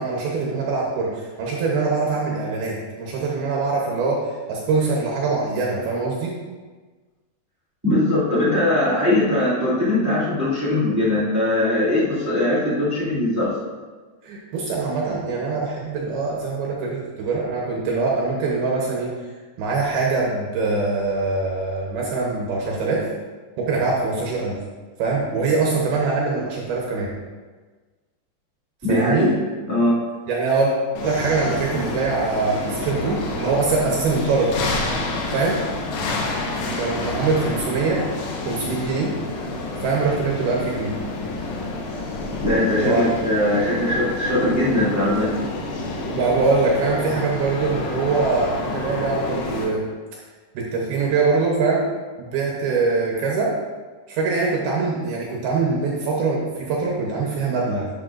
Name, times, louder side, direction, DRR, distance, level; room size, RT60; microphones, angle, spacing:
voice 1, 0.0-6.4 14.2-19.1 19.6-23.1 23.6-24.6 25.0-27.1 28.9-29.3 30.3-30.7 31.0-34.6 35.3-35.6 36.8-38.1 38.5-39.2 39.4-39.5 39.8-41.0 42.8-43.0 46.1-49.8 50.5-51.9 52.2-53.6 54.1-57.9, right 4 dB, 70° right, -2 dB, 2.5 m, -23 dB
voice 2, 7.8-13.5 28.8-29.3 29.7-29.9 42.4-45.3, left 1 dB, 20° right, -9 dB, 0.4 m, -20 dB
sound 1, 31.0-49.7, left 2 dB, 75° left, 3.2 m, -29 dB
11.5 x 7.2 x 2.5 m, 1.4 s
omnidirectional pair, 5.2 m